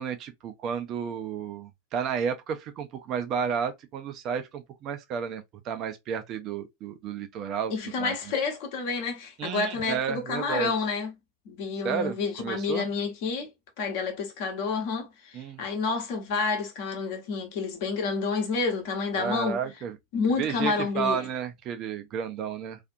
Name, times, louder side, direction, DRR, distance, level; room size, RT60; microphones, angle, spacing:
voice 1, 0.0-7.7 8.0-8.1 9.4-10.7 11.8-12.9 15.3-15.6 19.2-20.0 20.4-22.8, right 7 dB, 35° right, 0.5 m, -32 dB
voice 2, 7.7-11.1 11.5-13.5 13.8-19.6 20.1-21.3, left 4 dB, 50° left, 0.9 m, -29 dB
2.5 x 2.5 x 2.4 m
figure-of-eight pair, 90°, 0 cm